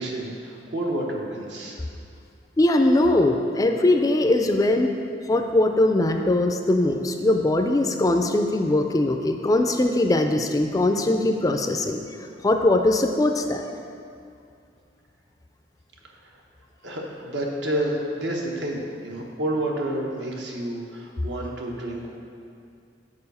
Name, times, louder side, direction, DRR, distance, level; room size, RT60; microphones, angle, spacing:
voice 1, 0.0-1.8 16.2-16.3 16.8-22.1, right 1 dB, 75° right, -1 dB, 1.1 m, -29 dB
voice 2, 2.6-4.9 5.3-12.0 12.4-13.6, left 1 dB, 20° left, 5 dB, 0.3 m, -21 dB
6.8 x 4.8 x 5.4 m, 2.5 s
head